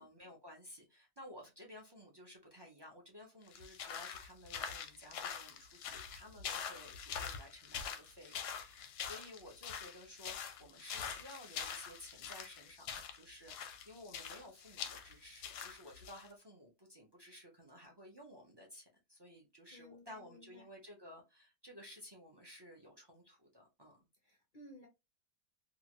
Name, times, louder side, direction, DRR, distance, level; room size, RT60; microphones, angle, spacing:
voice 1, 0.0-24.1, left 1 dB, 30° right, 0 dB, 0.4 m, -55 dB
sound 1, 3.5-16.3, left 7 dB, 85° left, 1.2 m, -45 dB
voice 2, 19.7-20.6 24.2-24.9, left 1 dB, 55° left, 0 dB, 0.5 m, -57 dB
2.9 x 2.4 x 2.9 m, 0.24 s
omnidirectional pair, 1.7 m